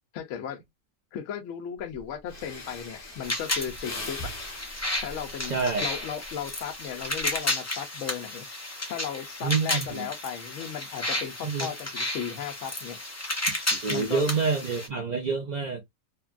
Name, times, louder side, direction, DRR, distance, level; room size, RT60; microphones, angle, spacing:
voice 1, 0.1-0.6 1.1-4.3 5.0-8.5 8.9-13.0 13.9-14.3, left 8 dB, 70° left, 0.9 m, -36 dB
Breathing, 1.9-2.0 2.3-6.5 7.0-7.4, left 1 dB, 45° left, 1.1 m, -41 dB
sound 1, 3.2-14.9, left 1 dB, 20° left, 0.4 m, -33 dB
voice 2, 5.5-5.9 9.4-10.1 11.4-11.7 13.7-15.8, right 5 dB, 70° right, 0.4 m, -27 dB
3.1 x 2.2 x 2.4 m
omnidirectional pair, 1.5 m